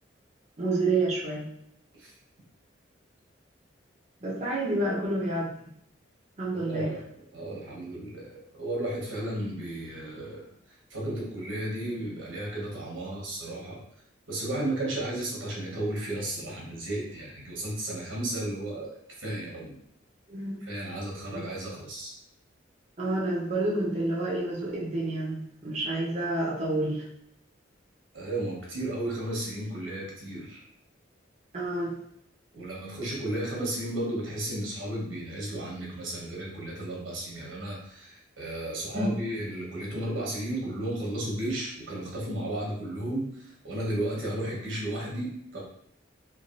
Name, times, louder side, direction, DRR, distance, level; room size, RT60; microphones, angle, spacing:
voice 1, 0.6-1.5 4.2-5.5 6.4-6.9 20.3-20.6 23.0-27.1 31.5-31.9 38.9-39.1, right 2 dB, 35° right, -5 dB, 0.6 m, -29 dB
voice 2, 6.5-10.4 10.7-13.8 14.3-19.7 20.6-22.1 28.1-30.6 32.5-45.6, right 1 dB, 80° right, -3 dB, 1.0 m, -34 dB
3.1 x 2.3 x 2.5 m, 0.69 s
head